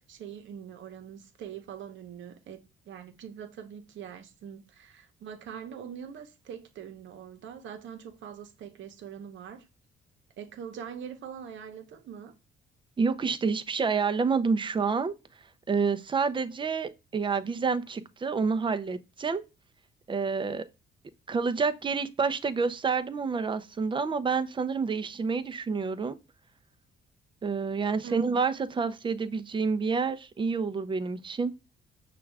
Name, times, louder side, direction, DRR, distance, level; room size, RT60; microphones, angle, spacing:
voice 1, 0.1-9.7 10.4-12.3 28.0-28.2, right 8 dB, 70° right, 0.9 m, -43 dB
voice 2, 13.0-15.1 15.7-19.4 20.1-20.6 21.3-26.2 27.4-31.5, right 5 dB, 25° right, 0.5 m, -28 dB
5.9 x 2.4 x 3.3 m
cardioid pair, 90°, 20 cm